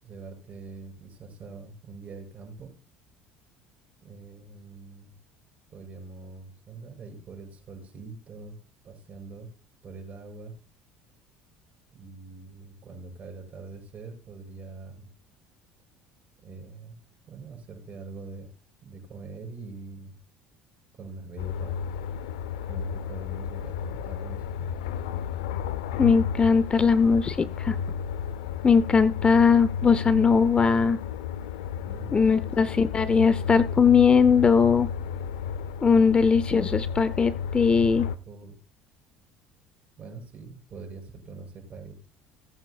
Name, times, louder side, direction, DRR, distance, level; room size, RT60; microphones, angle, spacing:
voice 1, 0.0-2.7 4.0-5.1 5.7-8.6 8.8-9.5 9.8-10.5 11.9-15.1 16.4-17.0 17.3-18.5 18.8-20.2 20.9-21.8 22.7-24.7 31.8-32.2 32.6-32.8 38.2-38.6 40.0-42.1, right 3 dB, 40° right, 2 dB, 6.6 m, -43 dB
sound 1, 21.4-38.2, left 8 dB, 90° left, 0.6 m, -33 dB
voice 2, 26.0-27.8 28.6-31.0 32.1-34.9 35.8-38.1, left 5 dB, 25° left, 15 dB, 0.7 m, -20 dB
19.0 x 8.8 x 2.4 m, 0.37 s
supercardioid pair, 85°, 4 cm